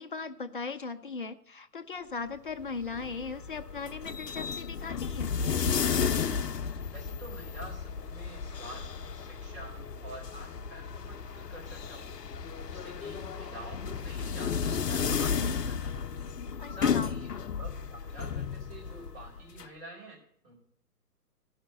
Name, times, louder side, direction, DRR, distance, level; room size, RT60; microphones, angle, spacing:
voice 1, 0.0-5.4 16.6-17.1, left 4 dB, 35° left, 10 dB, 0.5 m, -38 dB
sound 1, 2.6-19.7, left 6 dB, 80° left, 0.6 m, -33 dB
voice 2, 6.8-9.7 10.0-12.3 12.7-16.3 16.7-20.2 20.4-20.5, right 1 dB, 35° right, 0 dB, 4.3 m, -47 dB
13.5 x 5.7 x 7.9 m, 0.65 s
figure-of-eight pair, 130°, 47 cm